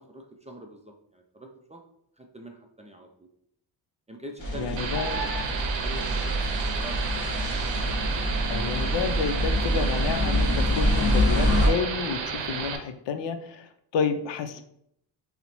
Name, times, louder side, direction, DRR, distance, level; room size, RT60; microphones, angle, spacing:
voice 1, 0.0-1.8 2.2-3.3 4.1-5.6 5.8-7.0 14.6-14.7, right 1 dB, 15° right, 2 dB, 0.4 m, -44 dB
sound 1, 4.4-11.7, equal, 30° left, 1.0 m, -25 dB
voice 2, 4.5-5.2 8.5-14.6, left 6 dB, 65° left, 9 dB, 0.5 m, -30 dB
sound 2, 4.8-12.8, right 6 dB, 70° right, 0.7 m, -32 dB
5.1 x 2.1 x 2.9 m, 0.72 s
cardioid pair, 85°, 46 cm